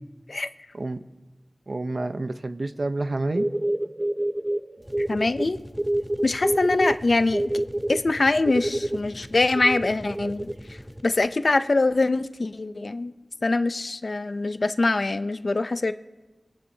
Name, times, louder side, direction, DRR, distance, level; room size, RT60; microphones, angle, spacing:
voice 1, 1.7-3.5, right 2 dB, 65° right, 9 dB, 0.7 m, -28 dB
sound 1, 3.3-5.5 5.8-7.0 7.3-9.0 9.5-10.5, right 1 dB, 30° right, 0.5 m, -26 dB
sound 2, 4.8-11.3, equal, ahead, 0.8 m, -44 dB
voice 2, 5.1-5.6 6.2-7.5 7.9-10.4 10.7-13.1 13.4-15.9, left 3 dB, 70° left, 11 dB, 0.5 m, -23 dB
24.0 x 11.5 x 2.8 m, 1.2 s
wide cardioid pair, 45°, 0 cm